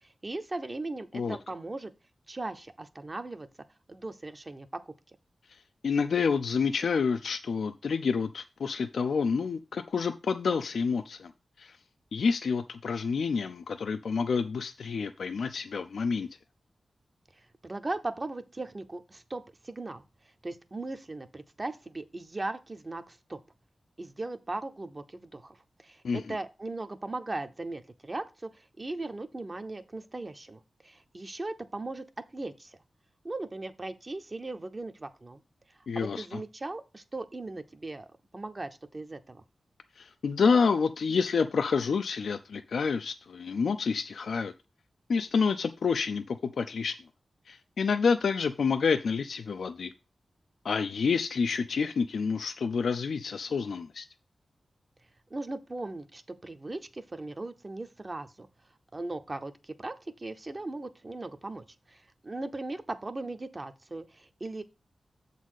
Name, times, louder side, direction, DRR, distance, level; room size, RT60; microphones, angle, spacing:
voice 1, 0.2-1.9 2.3-3.5 3.9-4.7 17.6-20.0 20.4-23.4 24.0-32.0 32.3-32.8 33.2-35.4 35.9-38.1 38.3-39.4 55.3-58.5 58.9-64.6, right 2 dB, 30° right, 9 dB, 0.8 m, -38 dB
voice 2, 5.8-11.3 11.6-11.8 12.1-16.3 26.0-26.4 35.9-36.4 40.0-44.5 45.1-47.0 47.5-49.9 50.6-54.1, left 5 dB, 85° left, 8 dB, 0.4 m, -28 dB
7.3 x 4.1 x 6.3 m, 0.28 s
wide cardioid pair, 90°, 0 cm